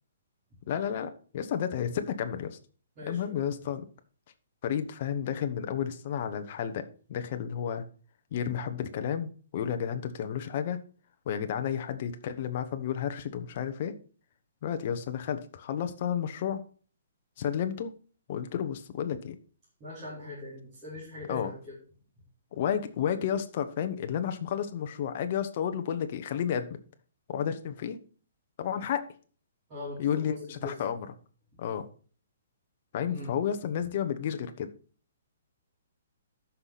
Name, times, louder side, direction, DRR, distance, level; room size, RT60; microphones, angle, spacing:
voice 1, 0.7-2.6 3.1-3.8 4.6-7.8 8.3-10.8 11.3-14.0 14.6-16.6 17.4-17.9 18.3-19.4 21.3-21.5 22.5-26.8 27.3-28.0 28.6-29.1 30.0-31.1 31.6-31.9 32.9-34.7, left 8 dB, 35° left, 8 dB, 1.0 m, -31 dB
voice 2, 3.0-3.4 19.8-21.6 29.7-30.4 30.6-30.7 33.1-33.3, left 2 dB, 20° right, -11 dB, 4.2 m, -41 dB
13.5 x 5.9 x 4.1 m, 0.40 s
hypercardioid pair, 175°, 0 cm